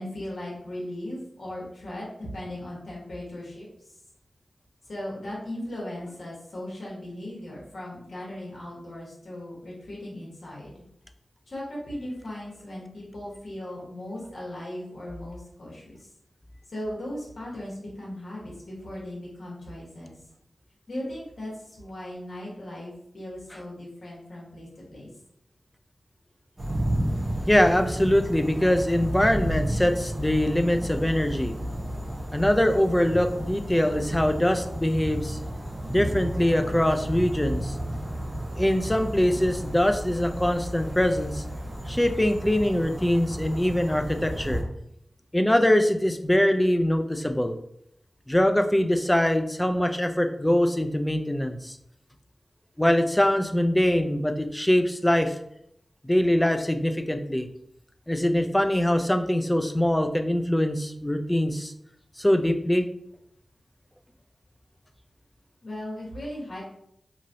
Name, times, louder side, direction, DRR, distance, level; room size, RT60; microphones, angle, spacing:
voice 1, 0.0-4.0 4.9-10.8 11.5-16.1 16.7-20.1 20.9-25.1 65.6-66.6, left 1 dB, 70° left, -5 dB, 1.3 m, -38 dB
sound 1, 26.6-44.6, right 1 dB, 45° right, 0.9 m, -32 dB
voice 2, 27.5-31.5 32.3-35.4 35.9-37.8 38.6-41.4 41.9-44.6 45.3-47.5 48.3-51.8 52.8-55.4 56.0-57.5 58.1-61.7 62.2-62.8, left 1 dB, 15° left, 6 dB, 0.4 m, -23 dB
3.0 x 2.7 x 2.6 m, 0.74 s
cardioid pair, 45°, 0 cm